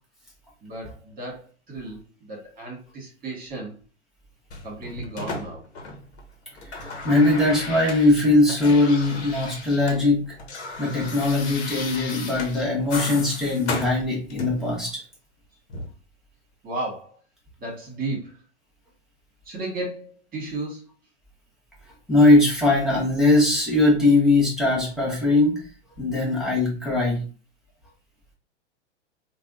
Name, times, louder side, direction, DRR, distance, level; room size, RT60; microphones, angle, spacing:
voice 1, 0.6-3.7 4.6-5.6 16.6-17.2 17.6-18.4 19.4-20.8, right 2 dB, 25° right, -1 dB, 1.6 m, -34 dB
sound 1, 4.5-6.2 6.5-10.0 10.3-14.7 15.7-15.9, left 3 dB, 65° left, 1.0 m, -35 dB
voice 2, 6.7-10.2 10.8-15.0 22.1-25.6 26.0-27.2, left 2 dB, ahead, -4 dB, 1.2 m, -20 dB
3.3 x 2.3 x 2.6 m, 0.37 s
hypercardioid pair, 105°, 36 cm